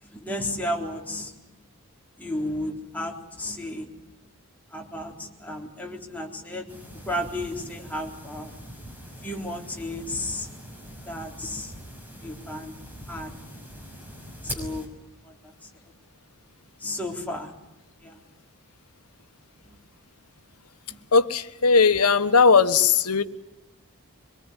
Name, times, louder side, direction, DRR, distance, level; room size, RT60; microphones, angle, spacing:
voice 1, 0.0-1.4 2.2-4.1 4.7-6.7 6.9-8.5 9.2-10.6 10.9-11.7 12.2-12.8 13.1-13.3 13.7-14.1 14.4-14.9 15.2-15.7 16.8-17.5 18.0-18.2 19.7-19.8 20.9-21.0, left 1 dB, 5° left, 3.9 m, -33 dB
sound 1, 6.7-14.9, equal, 10° right, 6.0 m, -42 dB
voice 2, 21.1-23.2, left 5 dB, 85° left, 1.4 m, -18 dB
24.5 x 23.0 x 10.0 m
head